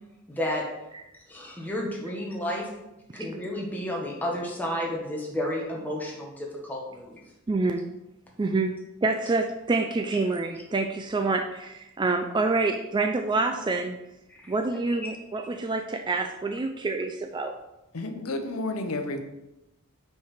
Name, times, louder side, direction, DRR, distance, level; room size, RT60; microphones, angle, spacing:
voice 1, 0.3-0.6 1.3-2.7 3.1-7.2 14.3-14.5, left 1 dB, 10° left, -2 dB, 1.3 m, -31 dB
voice 2, 7.5-7.8 8.4-8.7 9.0-14.0 14.5-17.5, right 3 dB, 20° right, 5 dB, 0.3 m, -27 dB
voice 3, 17.9-19.2, left 2 dB, 75° left, 6 dB, 0.7 m, -31 dB
5.5 x 4.5 x 5.0 m, 0.93 s
head